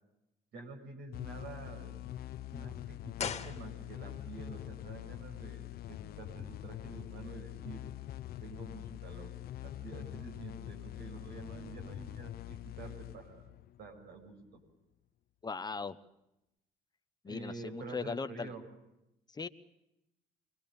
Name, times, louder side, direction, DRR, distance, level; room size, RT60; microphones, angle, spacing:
voice 1, 0.5-2.0 2.5-7.8 8.4-9.3 9.6-14.6 17.3-18.6, right 3 dB, 70° right, 5 dB, 7.3 m, -48 dB
sound 1, 1.1-14.4, left 14 dB, 65° left, 0.8 m, -44 dB
sound 2, 3.1-4.3 4.5-4.6, left 7 dB, 40° left, 2.0 m, -40 dB
voice 2, 15.4-16.0 17.2-18.5 19.3-19.5, left 4 dB, 25° left, 11 dB, 0.9 m, -38 dB
26.5 x 21.5 x 7.0 m, 0.88 s
cardioid pair, 110°, 17 cm